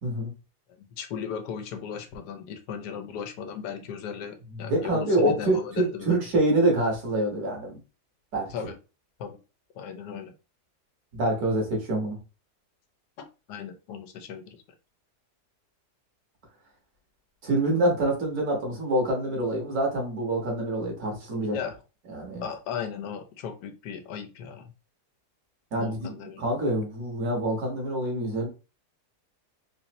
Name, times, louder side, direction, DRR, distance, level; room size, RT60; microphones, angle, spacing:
voice 1, 0.0-0.3 4.5-7.8 8.3-8.5 11.1-12.2 17.4-21.6 22.1-22.5 25.7-26.1 26.4-28.5, right 1 dB, 65° right, 0 dB, 1.8 m, -26 dB
voice 2, 0.8-6.2 8.5-8.8 9.2-9.4 9.7-10.3 13.5-14.6 21.4-21.8 22.4-24.7 25.8-26.5, left 7 dB, 85° left, 7 dB, 1.3 m, -37 dB
4.0 x 2.6 x 3.0 m, 0.31 s
omnidirectional pair, 1.7 m